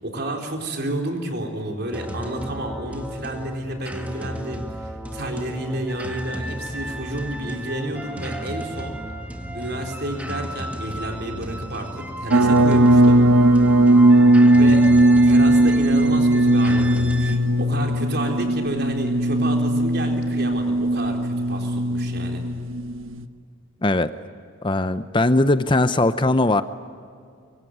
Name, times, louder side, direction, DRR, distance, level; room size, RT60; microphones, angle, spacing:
voice 1, 0.0-8.9 9.5-13.2 14.5-14.8 15.2-22.4, right 1 dB, 50° right, 3 dB, 4.1 m, -30 dB
sound 1, 1.9-17.4, equal, 5° right, 1.9 m, -34 dB
sound 2, 12.3-23.3, right 1 dB, 75° right, 1.2 m, -17 dB
voice 2, 23.8-24.1 24.6-26.6, left 2 dB, 25° left, 12 dB, 0.7 m, -19 dB
24.5 x 24.0 x 9.5 m, 2.2 s
head